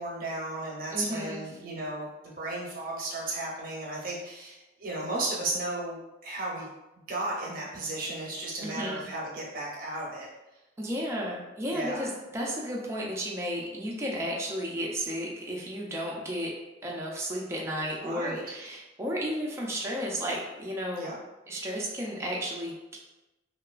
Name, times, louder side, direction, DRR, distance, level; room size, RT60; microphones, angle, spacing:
voice 1, 0.0-6.7 7.1-10.3 11.7-12.1 18.0-18.4 21.0-21.2, right 2 dB, 45° right, -4 dB, 0.7 m, -34 dB
voice 2, 0.9-1.4 8.6-9.0 10.8-16.5 16.8-21.1 21.5-23.0, equal, 15° right, -3 dB, 0.4 m, -33 dB
2.8 x 2.3 x 2.3 m, 1.0 s
head